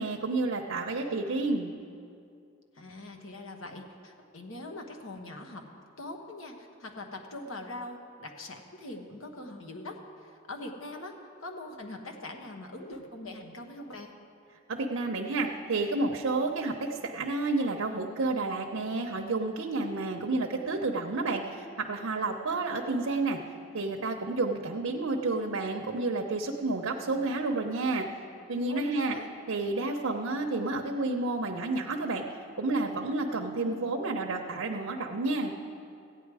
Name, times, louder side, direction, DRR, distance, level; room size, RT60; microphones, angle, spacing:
voice 1, 0.0-1.7 14.7-23.4 23.7-28.1 28.5-29.2 29.5-35.5, right 3 dB, 80° right, 1 dB, 0.7 m, -30 dB
voice 2, 2.7-5.6 6.0-14.1 28.7-29.3, left 2 dB, 80° left, 3 dB, 1.2 m, -42 dB
15.0 x 9.3 x 4.8 m, 2.5 s
head